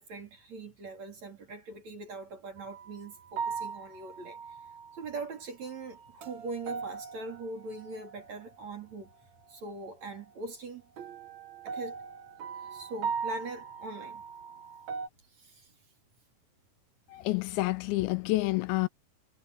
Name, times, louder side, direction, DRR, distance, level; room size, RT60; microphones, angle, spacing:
voice 1, 0.0-4.6 4.9-9.1 9.5-10.9 11.6-12.0 12.6-14.2 15.3-15.7, right 3 dB, 40° right, 4.2 m, -42 dB
sound 1, 2.6-2.9 3.4-5.2 5.7-8.6 11.0-15.1, right 6 dB, 60° right, 1.8 m, -39 dB
voice 2, 17.1-18.9, left 20 dB, 80° left, 2.7 m, -28 dB
omnidirectional pair, 5.4 m